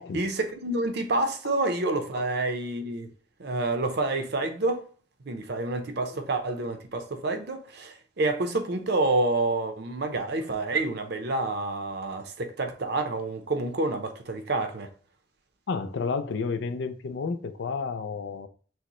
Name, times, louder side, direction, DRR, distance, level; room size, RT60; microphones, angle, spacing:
voice 1, 0.1-3.1 3.4-4.8 5.2-14.9, right 2 dB, 65° right, 0.7 m, -28 dB
voice 2, 15.7-18.5, left 4 dB, 80° left, 0.4 m, -31 dB
6.3 x 2.1 x 3.0 m
head